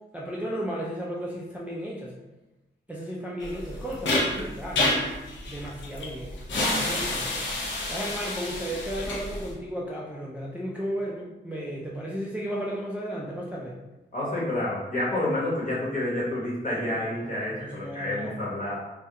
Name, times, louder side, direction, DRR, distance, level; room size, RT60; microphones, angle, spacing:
voice 1, 0.1-2.1 2.9-4.9 5.5-6.3 6.7-13.8 16.7-18.5, equal, 5° right, -5 dB, 0.3 m, -34 dB
sound 1, 3.4-9.5, left 2 dB, 70° left, 0.6 m, -29 dB
voice 2, 14.1-18.8, left 1 dB, 40° left, -6 dB, 1.0 m, -29 dB
2.3 x 2.1 x 2.7 m, 1.0 s
wide cardioid pair, 90°, 20 cm